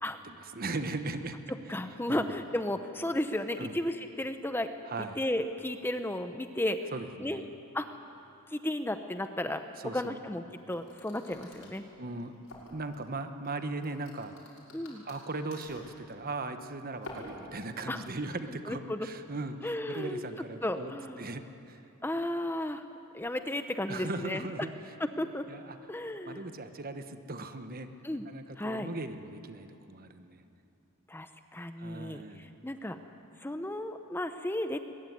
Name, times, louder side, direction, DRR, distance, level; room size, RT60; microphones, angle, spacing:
voice 1, 0.2-1.4 2.1-2.3 3.6-3.8 4.9-5.2 6.9-7.5 9.8-10.2 12.0-12.3 12.7-14.3 15.0-20.9 21.2-21.8 23.9-24.7 25.5-25.8 26.2-27.9 28.3-30.4 31.8-32.5, right 2 dB, 40° right, 9 dB, 1.2 m, -38 dB
voice 2, 1.7-4.7 5.0-6.9 7.2-7.4 7.7-7.9 8.5-9.6 9.9-11.8 14.7-15.0 17.9-18.1 18.5-19.1 19.6-20.2 20.6-21.3 22.0-22.8 23.1-24.5 25.0-25.5 25.9-26.4 28.0-28.3 28.6-28.9 31.1-33.0 33.4-34.8, left 1 dB, 10° left, 8 dB, 0.7 m, -34 dB
sound 1, 10.7-13.0 13.4-16.0 16.9-18.0, left 1 dB, 65° left, 6.3 m, -48 dB
22.0 x 21.0 x 9.4 m, 2.8 s
head